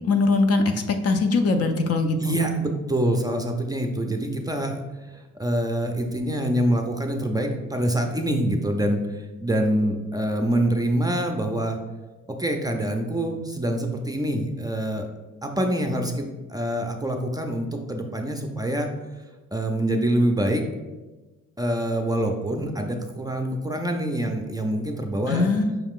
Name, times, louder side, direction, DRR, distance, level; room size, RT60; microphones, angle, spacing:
voice 1, 0.1-0.6 1.0-2.4 25.3-25.8, left 3 dB, 55° left, 6 dB, 0.5 m, -21 dB
voice 2, 2.2-4.8 5.1-11.8 12.4-15.1 15.4-18.9 19.5-20.6 21.6-25.4, right 1 dB, 15° right, 3 dB, 0.4 m, -25 dB
5.7 x 2.4 x 3.6 m, 1.2 s
cardioid pair, 90°, 30 cm